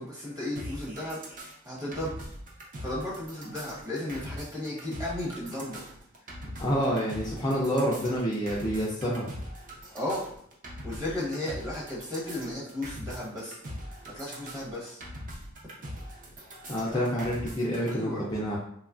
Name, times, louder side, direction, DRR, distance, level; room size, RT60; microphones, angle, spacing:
voice 1, 0.0-2.1 2.8-5.9 9.9-10.2 10.8-13.6 14.0-15.0 16.9-17.1 17.8-18.2, left 1 dB, 15° right, -6 dB, 0.9 m, -35 dB
sound 1, 0.6-17.9, equal, 40° right, 0.5 m, -42 dB
voice 2, 6.6-9.3 16.7-18.6, equal, 20° left, -5 dB, 0.3 m, -28 dB
2.9 x 2.3 x 2.4 m, 0.66 s
head